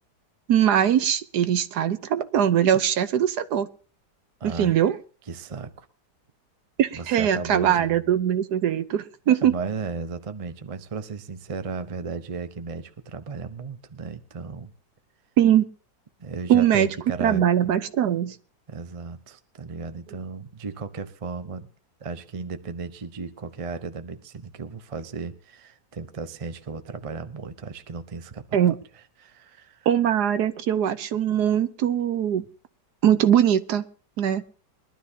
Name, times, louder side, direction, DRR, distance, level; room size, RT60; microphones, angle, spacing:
voice 1, 0.5-3.7 4.4-5.0 6.8-9.5 15.4-15.7 16.5-16.9 17.2-18.4 28.5-28.8 29.9-32.4 33.0-33.8 34.2-34.4, right 10 dB, 70° right, 12 dB, 1.3 m, -21 dB
voice 2, 4.4-4.7 5.3-5.9 6.9-8.2 9.3-14.7 16.2-17.7 18.7-21.7 22.0-28.6 29.2-29.9, right 4 dB, 35° right, 9 dB, 0.6 m, -35 dB
22.0 x 12.0 x 2.8 m, 0.39 s
omnidirectional pair, 1.9 m